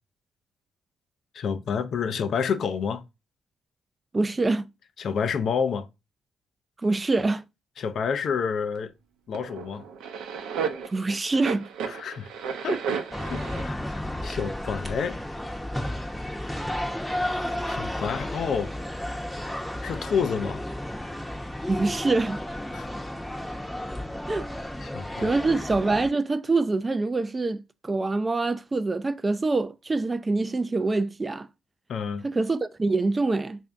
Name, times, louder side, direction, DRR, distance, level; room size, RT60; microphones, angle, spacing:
voice 1, 1.3-3.0 5.0-5.9 7.8-8.9 9.3-9.8 11.9-12.3 12.6-13.0 13.2-15.2 17.7-18.7 19.8-20.6 22.7-22.9 24.8-25.3 31.9-32.3, left 6 dB, 60° left, 0.4 m, -29 dB
voice 2, 4.1-4.7 6.8-7.4 10.9-11.7 21.7-22.4 24.3-24.5 25.2-31.5 32.2-33.6, right 3 dB, 25° right, 0.3 m, -25 dB
sound 1, 8.7-8.8 9.3-13.6, right 6 dB, 85° right, 0.6 m, -33 dB
sound 2, 13.1-26.1, left 1 dB, 5° left, 0.7 m, -33 dB
3.3 x 2.5 x 3.5 m
cardioid pair, 90°, 0 cm